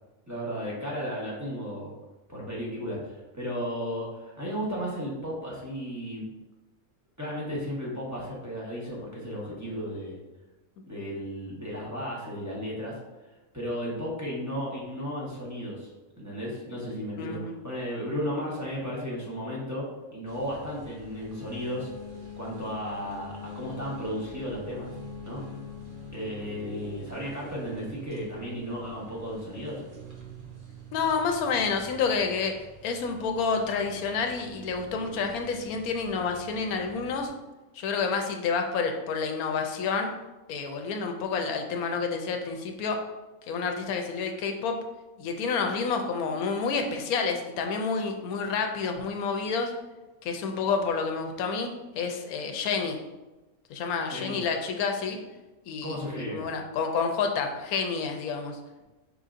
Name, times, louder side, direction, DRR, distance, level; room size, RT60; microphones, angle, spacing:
voice 1, 0.3-1.9 2.3-6.2 7.2-10.2 10.9-13.0 13.5-15.9 16.2-21.9 22.4-24.9 25.3-25.4 26.1-29.8 54.1-54.4 55.8-56.5, equal, 15° right, -6 dB, 1.0 m, -34 dB
voice 2, 17.2-17.5 30.9-32.5 32.8-37.3 37.7-40.1 40.5-43.0 43.5-44.8 45.2-49.7 50.2-51.7 51.9-53.0 53.7-55.2 55.7-58.6, left 5 dB, 90° left, 4 dB, 1.1 m, -29 dB
sound 1, 20.3-37.3, left 1 dB, 40° right, 0.9 m, -45 dB
5.2 x 3.9 x 2.5 m, 1.1 s
omnidirectional pair, 1.5 m